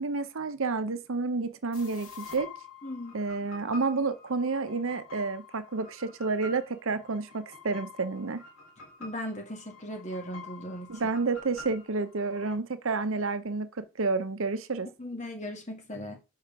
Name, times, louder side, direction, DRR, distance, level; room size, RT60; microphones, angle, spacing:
voice 1, 0.0-2.5 3.1-8.4 10.9-14.9, right 3 dB, 65° right, 0.7 m, -30 dB
sound 1, 1.7-12.5, left 3 dB, 75° left, 3.7 m, -47 dB
voice 2, 2.8-3.2 9.0-10.9 15.0-16.2, equal, 35° left, 1.9 m, -37 dB
5.6 x 5.1 x 5.8 m
head